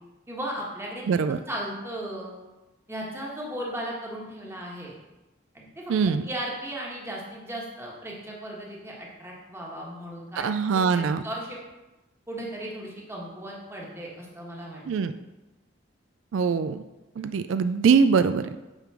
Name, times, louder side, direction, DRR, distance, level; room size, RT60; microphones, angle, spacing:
voice 1, 0.3-1.0 1.5-2.4 2.9-5.0 5.5-11.6 12.3-14.8, right 1 dB, 15° right, -3 dB, 1.3 m, -36 dB
voice 2, 1.1-1.4 5.9-6.2 10.4-11.2 14.9-15.1 16.3-16.8 17.2-18.5, right 5 dB, 75° right, 11 dB, 0.3 m, -22 dB
9.0 x 3.7 x 6.0 m, 1.1 s
head